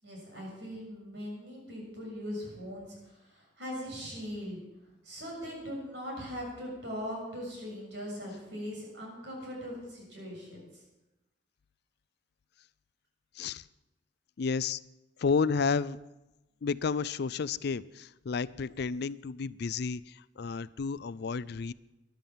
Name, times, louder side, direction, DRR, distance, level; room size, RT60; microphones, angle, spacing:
voice 1, 0.0-4.6 5.0-10.7, equal, 70° right, -1 dB, 7.0 m, -40 dB
voice 2, 14.4-14.8 15.2-16.0 16.6-21.7, left 5 dB, 65° left, 18 dB, 0.4 m, -31 dB
13.5 x 11.5 x 7.3 m, 0.99 s
head